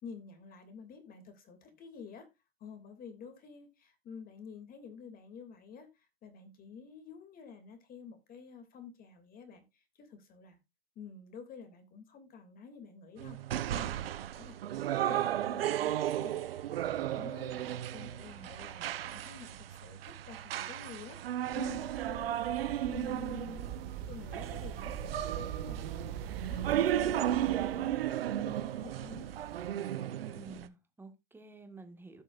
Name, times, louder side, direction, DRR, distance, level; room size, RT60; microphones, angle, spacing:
voice 1, 0.0-2.3 2.6-10.6 10.9-13.4 13.7-14.6 14.9-23.7 24.1-26.0 26.5-28.0 28.2-29.3, left 5 dB, 30° left, 2.8 m, -49 dB
sound 1, 13.2-30.7, right 11 dB, 75° right, 0.9 m, -35 dB
voice 2, 18.0-18.5 30.2-32.2, right 3 dB, 5° right, 1.7 m, -51 dB
sound 2, 21.5-29.7, right 8 dB, 50° right, 1.9 m, -43 dB
16.0 x 6.2 x 2.6 m
hypercardioid pair, 115°, 29 cm